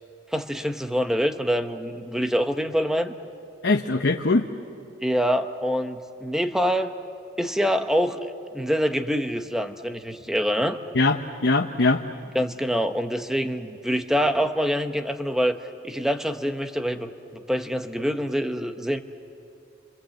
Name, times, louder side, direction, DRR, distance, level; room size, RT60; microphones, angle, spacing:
voice 1, 0.3-3.1 5.0-6.9 7.4-8.2 8.5-10.8 12.3-15.6 15.8-19.0, equal, 5° right, 7 dB, 0.9 m, -25 dB
voice 2, 3.6-4.5 10.9-12.0, left 3 dB, 70° left, 3 dB, 0.9 m, -21 dB
29.0 x 25.5 x 7.7 m, 2.8 s
head